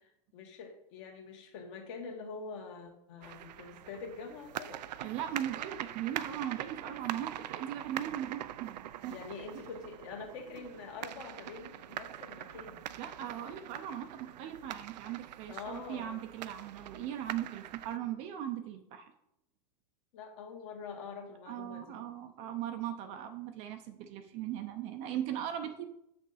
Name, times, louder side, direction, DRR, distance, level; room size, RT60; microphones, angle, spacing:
voice 1, 0.3-4.8 9.1-12.8 15.5-16.3 20.1-22.0, left 5 dB, 45° left, 3 dB, 1.6 m, -45 dB
sound 1, 3.2-18.0, right 12 dB, 85° right, 0.5 m, -43 dB
voice 2, 5.0-9.2 9.5-9.6 13.0-19.1 21.5-25.9, right 11 dB, 30° right, 7 dB, 0.6 m, -39 dB
7.5 x 6.2 x 4.1 m, 0.78 s
supercardioid pair, 155°, 21 cm